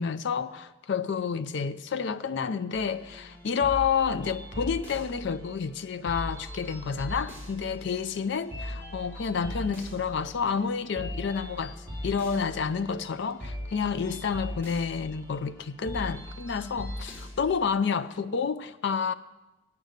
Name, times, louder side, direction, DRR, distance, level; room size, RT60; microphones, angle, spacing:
voice 1, 0.0-11.7 12.0-19.1, left 6 dB, 60° left, 0.4 m, -29 dB
sound 1, 2.7-17.5, left 1 dB, 10° left, 3.3 m, -40 dB
8.5 x 8.0 x 6.4 m
head